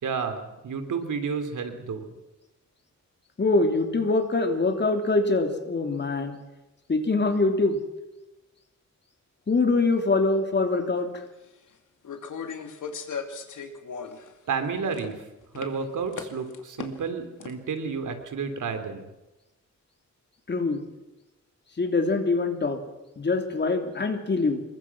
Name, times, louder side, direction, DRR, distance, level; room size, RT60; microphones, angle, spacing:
voice 1, 0.0-2.1 14.5-15.2 15.5-19.1, right 5 dB, 85° right, 7 dB, 3.4 m, -31 dB
voice 2, 3.4-6.4 6.9-7.8 9.5-11.1 20.5-20.8 21.8-22.8 23.2-24.6, left 3 dB, 35° left, 5 dB, 3.2 m, -24 dB
sound 1, 11.1-11.2 12.0-14.3 14.6-15.2 15.5-15.7 16.1-17.1 17.4-17.5, left 6 dB, 80° left, 2.6 m, -37 dB
27.5 x 22.5 x 6.2 m, 0.99 s
wide cardioid pair, 135°, 30 cm